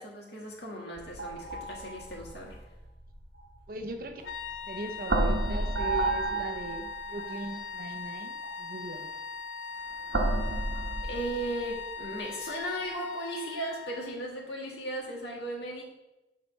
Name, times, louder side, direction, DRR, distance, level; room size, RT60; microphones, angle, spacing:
voice 1, 0.0-2.6 11.0-15.9, right 1 dB, 65° left, -1 dB, 1.8 m, -36 dB
sound 1, 1.0-4.6 5.0-7.5 8.4-8.6 10.1-11.9, right 2 dB, 80° right, 1.0 m, -31 dB
voice 2, 3.7-4.2 4.6-9.1, right 1 dB, 50° right, 6 dB, 0.6 m, -39 dB
sound 2, 4.2-14.2, left 5 dB, 90° left, 0.5 m, -40 dB
6.6 x 4.2 x 5.4 m, 0.97 s
head